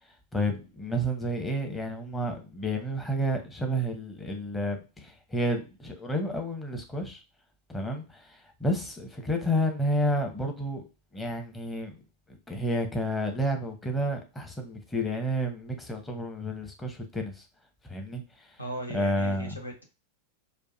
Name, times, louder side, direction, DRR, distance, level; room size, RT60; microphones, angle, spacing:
voice 1, 0.3-7.2 7.7-10.8 11.1-12.0 12.3-17.5 17.9-18.5 18.9-19.6, equal, 10° left, 0.9 m, -30 dB
voice 2, 18.6-19.8, right 1 dB, 80° left, 1.0 m, -38 dB
4.5 x 2.6 x 2.6 m
figure-of-eight pair, 90°, 0 cm